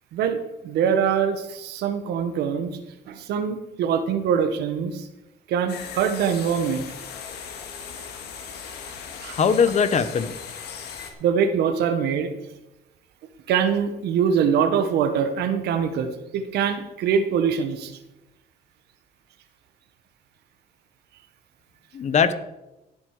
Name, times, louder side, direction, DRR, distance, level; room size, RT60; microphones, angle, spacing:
voice 1, 0.6-2.8 3.1-5.1 5.5-6.9 9.2-9.4 11.2-12.3 13.5-17.9, right 7 dB, 75° right, 8 dB, 1.5 m, -23 dB
sound 1, 5.7-11.1, left 6 dB, 75° left, 2.2 m, -38 dB
voice 2, 9.3-10.3 21.9-22.3, left 6 dB, 45° left, 12 dB, 1.0 m, -20 dB
16.5 x 7.9 x 4.9 m, 0.96 s
cardioid pair, 110°, 17 cm